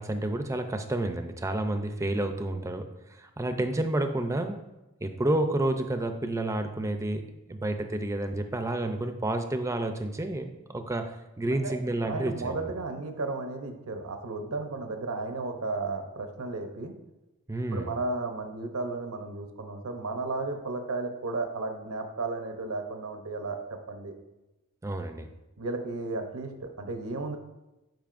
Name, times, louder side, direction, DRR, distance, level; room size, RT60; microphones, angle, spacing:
voice 1, 0.0-4.6 5.0-7.2 7.5-12.7 17.5-17.9 24.8-25.3, right 1 dB, 15° right, 7 dB, 0.4 m, -30 dB
voice 2, 12.1-17.0 17.7-24.1 25.6-27.4, right 3 dB, 90° right, 5 dB, 0.8 m, -34 dB
10.5 x 5.1 x 2.5 m, 1.0 s
head